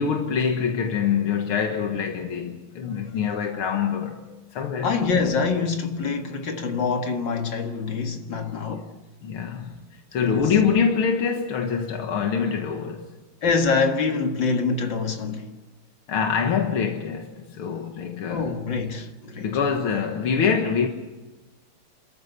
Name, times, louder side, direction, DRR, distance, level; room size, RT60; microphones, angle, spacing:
voice 1, 0.0-4.2 4.5-5.1 5.6-5.7 9.2-9.7 10.1-13.1 16.1-18.6 19.4-20.9, left 6 dB, 90° left, 2.3 m, -25 dB
voice 2, 4.8-8.9 10.2-10.4 13.4-15.5 18.3-19.5, left 4 dB, 60° left, 2.5 m, -25 dB
28.0 x 14.0 x 8.1 m
omnidirectional pair, 2.3 m